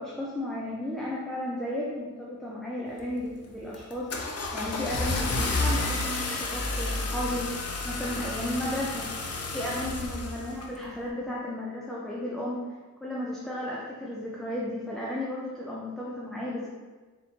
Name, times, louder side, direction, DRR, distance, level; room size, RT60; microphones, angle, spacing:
voice 1, 0.0-7.5 7.8-9.1 9.5-16.7, left 1 dB, ahead, -5 dB, 0.5 m, -34 dB
Car / Engine starting, 3.0-3.3 3.7-10.7, left 2 dB, 50° left, 0.6 m, -31 dB
4.0 x 3.6 x 2.8 m, 1.3 s
wide cardioid pair, 115°, 32 cm